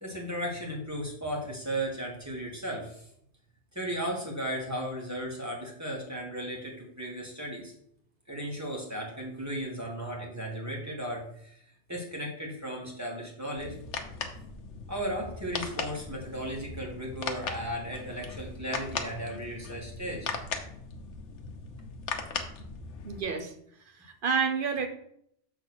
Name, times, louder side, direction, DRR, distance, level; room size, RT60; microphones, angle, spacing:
voice 1, 0.0-3.1 3.7-7.7 8.3-11.6 11.9-13.8 14.9-20.3, right 1 dB, 15° right, -2 dB, 1.7 m, -35 dB
sound 1, 13.6-23.2, left 5 dB, 85° left, 1.1 m, -38 dB
voice 2, 23.0-23.5 24.0-24.9, right 5 dB, 50° right, 6 dB, 1.0 m, -29 dB
7.1 x 3.5 x 6.2 m, 0.70 s
omnidirectional pair, 1.2 m